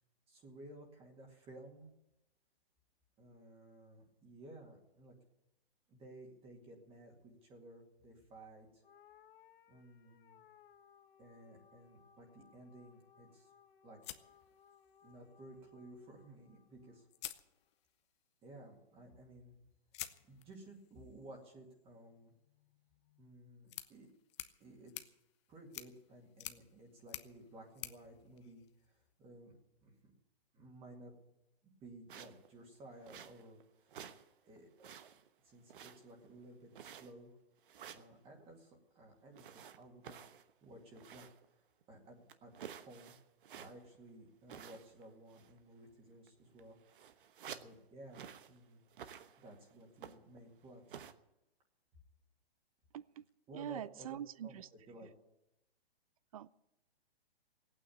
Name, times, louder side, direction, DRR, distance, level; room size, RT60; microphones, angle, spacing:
voice 1, 0.3-1.9 3.2-5.2 5.9-8.8 9.7-10.4 11.2-13.5 13.8-14.0 15.0-17.1 18.4-19.6 20.2-22.3 23.2-24.1 24.6-25.1 25.5-29.6 29.8-29.9 30.5-31.1 31.8-34.0 34.4-34.9 35.4-37.3 37.9-41.3 41.9-42.5 42.8-43.1 43.5-46.8 47.0-47.2 47.5-48.8 49.4-50.8 53.5-54.6 54.9-55.1, right 1 dB, 20° right, 2.2 m, -56 dB
sound 1, 8.8-17.4, left 8 dB, 60° left, 1.2 m, -65 dB
sound 2, 14.0-15.2 16.5-16.6 17.1-18.1 19.9-29.1, left 14 dB, 30° left, 0.7 m, -51 dB
sound 3, 32.1-32.5 33.0-33.6 33.9-34.3 34.6-35.3 35.7-36.3 36.7-37.3 37.7-38.1 39.4-41.5 41.8-41.9 42.3-44.0 44.5-45.1 45.3-45.6 46.3-46.4 46.6-47.8 48.1-48.6 48.9-49.6 50.0-50.4 50.9-51.1, right 8 dB, 55° right, 1.1 m, -52 dB
voice 2, 53.5-54.7 56.3-56.5, right 10 dB, 35° right, 0.4 m, -44 dB
16.5 x 9.0 x 8.6 m
hypercardioid pair, 145°, 31 cm